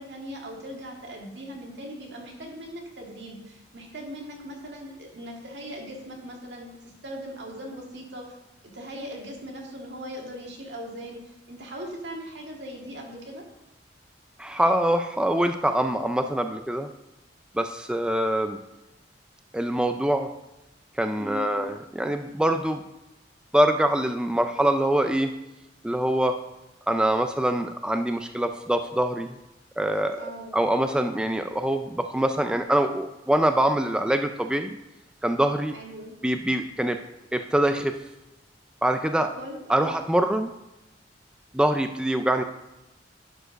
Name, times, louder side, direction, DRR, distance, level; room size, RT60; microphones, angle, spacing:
voice 1, 0.0-6.7 7.0-8.4 8.6-13.4 21.2-21.6 30.1-30.8 35.7-36.2 39.4-39.9, equal, 75° right, 0 dB, 2.0 m, -39 dB
voice 2, 14.4-16.9 17.5-18.6 19.5-20.3 21.0-22.8 23.5-25.3 25.8-26.4 26.9-29.3 29.8-30.2 30.5-34.8 35.2-35.7 36.2-37.0 37.3-38.0 38.8-39.3 39.7-40.5 41.5-42.4, right 1 dB, 5° right, 7 dB, 0.3 m, -24 dB
11.0 x 4.7 x 5.1 m, 0.96 s
head